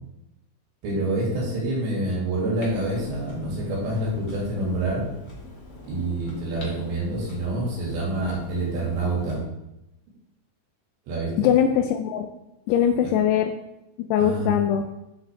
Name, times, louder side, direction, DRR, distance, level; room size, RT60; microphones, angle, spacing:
voice 1, 0.8-5.0 5.8-9.4 11.1-11.5 13.0-13.1 14.2-14.5, right 2 dB, 75° right, -5 dB, 4.3 m, -27 dB
Clock, 2.6-9.4, left 2 dB, 65° left, 1.0 m, -42 dB
voice 2, 11.4-12.3 12.7-13.5 14.1-14.9, left 9 dB, 85° left, 5 dB, 2.3 m, -21 dB
9.5 x 6.8 x 3.4 m, 0.90 s
omnidirectional pair, 5.2 m